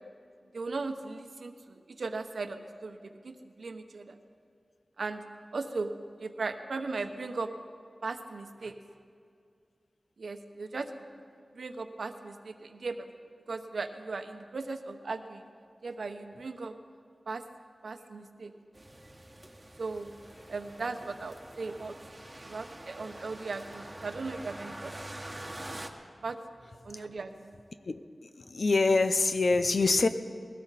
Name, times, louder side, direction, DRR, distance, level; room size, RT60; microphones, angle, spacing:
voice 1, 0.5-4.2 5.0-5.2 5.5-5.9 6.2-7.5 8.0-8.7 10.2-11.0 11.5-13.1 13.5-15.5 15.8-16.7 17.3-17.4 17.8-18.5 19.8-20.1 20.5-22.0 22.5-25.5 26.2-26.4 26.8-27.6, right 3 dB, 80° right, 7 dB, 1.0 m, -37 dB
sound 1, 18.7-25.9, right 1 dB, 20° right, 1.3 m, -45 dB
voice 2, 28.4-30.1, left 3 dB, 65° left, 10 dB, 0.7 m, -25 dB
20.5 x 16.5 x 4.2 m, 2.4 s
wide cardioid pair, 75°, 0 cm